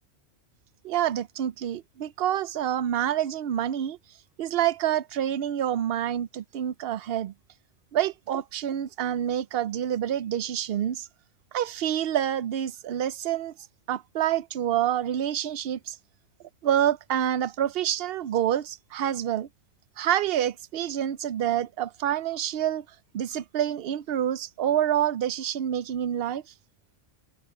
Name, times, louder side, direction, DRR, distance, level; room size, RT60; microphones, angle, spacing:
voice 1, 0.8-4.0 4.4-7.3 7.9-11.1 11.5-13.5 13.9-16.0 16.6-19.5 20.0-22.9 23.1-26.4, right 10 dB, 65° right, 0.8 m, -27 dB
omnidirectional pair, 1.1 m